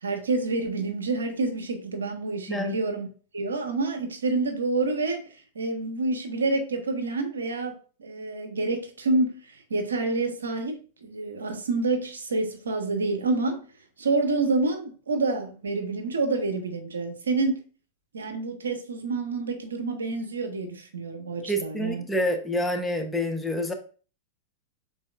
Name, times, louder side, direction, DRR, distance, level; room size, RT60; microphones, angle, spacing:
voice 1, 0.0-3.1 3.3-5.2 5.5-13.6 14.0-17.6 18.1-22.0, right 3 dB, 80° right, 0.9 m, -28 dB
voice 2, 21.4-23.7, equal, 5° left, 0.8 m, -27 dB
5.5 x 4.0 x 2.4 m
hypercardioid pair, 100°, 0 cm